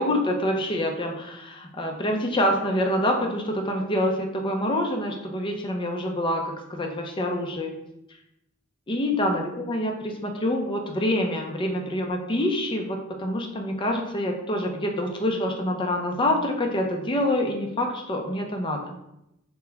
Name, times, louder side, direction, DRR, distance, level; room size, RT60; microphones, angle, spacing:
voice 1, 0.0-7.7 8.9-18.8, left 1 dB, 25° left, 2 dB, 0.5 m, -26 dB
4.5 x 2.1 x 3.9 m, 0.85 s
head